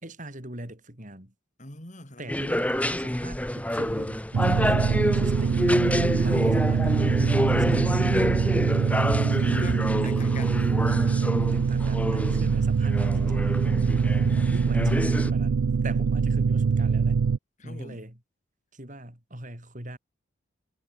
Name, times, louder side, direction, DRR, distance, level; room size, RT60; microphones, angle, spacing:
voice 1, 0.0-1.3 2.2-5.6 6.2-7.9 8.3-8.7 10.0-10.2 11.5-13.6 14.5-17.3 17.6-18.2 18.7-20.0, right 1 dB, 40° right, 5.2 m, -41 dB
voice 2, 1.6-2.3 6.2-6.6 9.3-10.7 14.1-14.9 17.6-18.0, left 2 dB, 35° left, 4.5 m, -43 dB
sound 1, 2.3-15.3, equal, 5° left, 1.5 m, -28 dB
sound 2, 4.3-17.4, right 5 dB, 85° right, 0.4 m, -24 dB
head